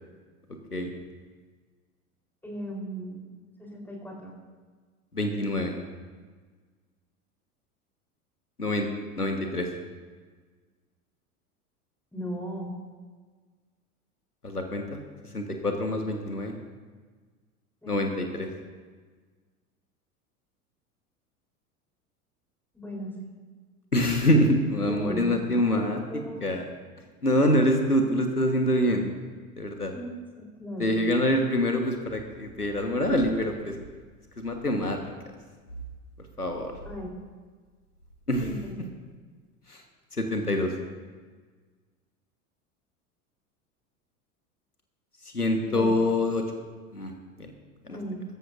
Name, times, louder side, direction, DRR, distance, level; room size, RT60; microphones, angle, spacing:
voice 1, 2.4-3.3 3.6-4.4 12.1-12.7 17.8-18.1 22.7-23.3 24.7-26.5 29.9-30.1 30.4-31.0 36.8-37.1 38.4-38.9 45.6-45.9 47.8-48.2, right 1 dB, 5° left, -1 dB, 3.9 m, -37 dB
voice 2, 5.1-5.7 8.6-8.9 9.2-9.7 14.4-15.0 15.3-16.5 17.9-18.5 23.9-26.0 26.4-26.6 27.2-29.1 29.6-29.9 30.8-33.7 34.4-35.0 36.4-36.7 38.3-38.5 39.7-39.8 40.2-40.7 45.3-46.4 46.9-47.1 47.4-47.5 47.9-48.0, left 1 dB, 90° left, 4 dB, 1.5 m, -25 dB
22.0 x 14.0 x 2.6 m, 1.5 s
figure-of-eight pair, 85°, 45 cm